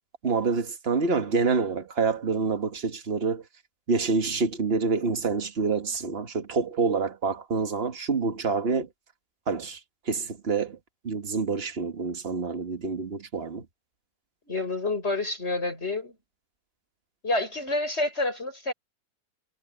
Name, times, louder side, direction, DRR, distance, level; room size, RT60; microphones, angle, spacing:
voice 1, 0.2-3.4 3.9-8.9 9.5-9.8 10.1-10.8 11.0-13.6, right 4 dB, 35° right, 1.7 m, -27 dB
voice 2, 14.5-16.1 17.2-18.7, left 2 dB, 35° left, 6.8 m, -28 dB
omnidirectional pair, 1.9 m